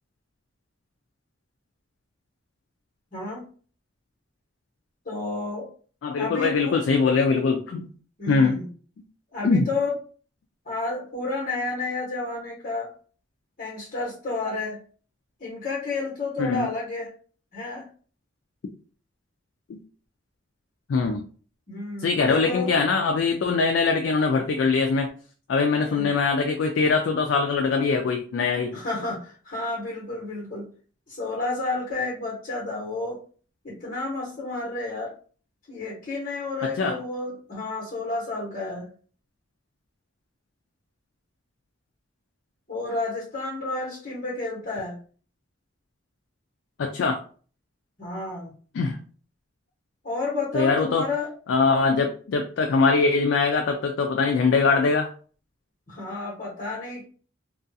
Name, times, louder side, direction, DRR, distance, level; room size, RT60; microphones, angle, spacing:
voice 1, 3.1-3.4 5.0-5.7 6.2-6.8 8.2-8.7 9.3-9.9 10.6-12.9 13.6-14.8 15.4-17.1 17.5-17.9 21.7-22.7 25.7-26.1 28.7-30.7 31.1-33.2 33.6-35.1 35.7-38.9 42.7-45.0 48.0-48.5 50.0-51.3 55.9-57.0, left 3 dB, 45° left, -6 dB, 1.0 m, -31 dB
voice 2, 6.0-7.9 8.3-8.6 9.4-9.7 16.4-16.7 19.7-19.8 20.9-21.2 22.0-25.1 25.5-28.8 36.6-37.0 46.8-47.2 48.7-49.0 50.5-51.0 51.5-55.1, left 4 dB, 75° left, 3 dB, 0.3 m, -22 dB
2.4 x 2.3 x 2.6 m, 0.42 s
head